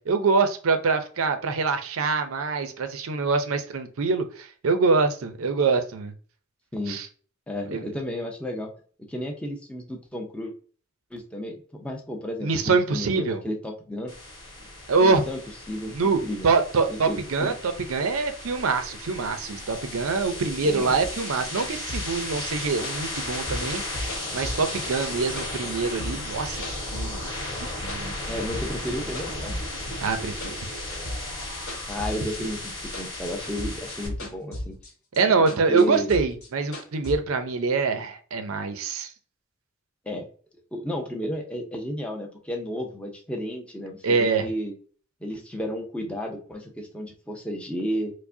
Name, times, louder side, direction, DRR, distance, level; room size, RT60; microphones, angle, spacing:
voice 1, 0.1-6.1 6.9-7.1 7.7-7.8 12.4-13.4 14.9-15.2 15.9-17.5 17.9-23.8 24.3-26.6 26.9-27.3 27.6-28.1 30.0-30.6 32.4-32.5 35.2-39.1 44.0-44.5, right 4 dB, 70° right, 8 dB, 0.5 m, -24 dB
voice 2, 7.5-8.7 9.1-10.5 11.1-14.1 14.6-14.7 15.0-15.4 15.7-16.5 16.9-17.5 20.6-21.0 28.3-29.6 31.9-34.8 35.7-36.1 40.0-40.3 40.7-44.7 45.2-48.1, equal, 5° left, 1 dB, 0.6 m, -32 dB
sound 1, 14.1-34.1, left 1 dB, 20° left, 1.5 m, -35 dB
sound 2, 21.0-25.1 25.4-27.3 27.6-28.9 29.1-32.7 32.9-34.9 35.1-37.2, left 1 dB, 65° left, 1.3 m, -36 dB
4.7 x 2.1 x 2.6 m, 0.42 s
head